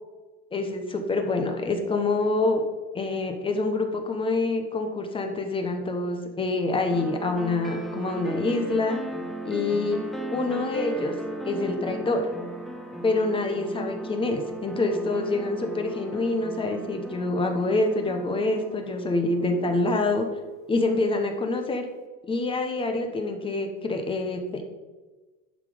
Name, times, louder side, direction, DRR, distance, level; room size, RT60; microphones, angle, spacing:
voice 1, 0.5-2.6 2.9-9.0 9.4-10.0 10.3-11.1 11.4-12.3 13.0-20.3 20.7-21.8 22.3-24.6, left 2 dB, 15° left, 4 dB, 1.1 m, -26 dB
sound 1, 6.9-20.5, right 1 dB, ahead, 0.6 m, -37 dB
11.0 x 5.9 x 5.1 m, 1.2 s
cardioid pair, 160°, 32 cm